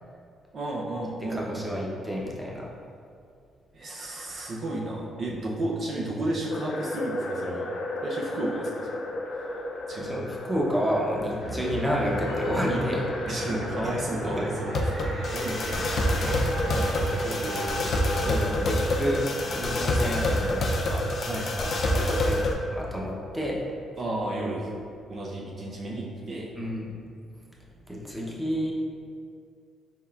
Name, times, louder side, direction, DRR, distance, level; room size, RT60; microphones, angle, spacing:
voice 1, 0.5-1.7 3.7-7.7 8.0-8.9 9.9-10.1 13.3-15.0 15.3-16.3 16.7-17.7 21.3-22.4 24.0-24.7 25.1-26.5, right 1 dB, 50° right, -2 dB, 0.5 m, -33 dB
voice 2, 1.3-2.7 10.0-13.0 13.8-14.0 14.2-14.3 16.2-16.4 17.8-17.9 18.2-19.2 19.5-21.0 21.5-21.7 22.1-22.4 22.7-23.6 26.5-26.9 27.9-28.7, equal, 5° right, -4 dB, 0.7 m, -30 dB
sound 1, 6.5-22.5, left 1 dB, 50° left, 0.4 m, -29 dB
sound 2, 11.4-20.5, right 1 dB, 85° right, 1.0 m, -37 dB
4.1 x 3.6 x 2.3 m, 2.3 s
cardioid pair, 90°, 0 cm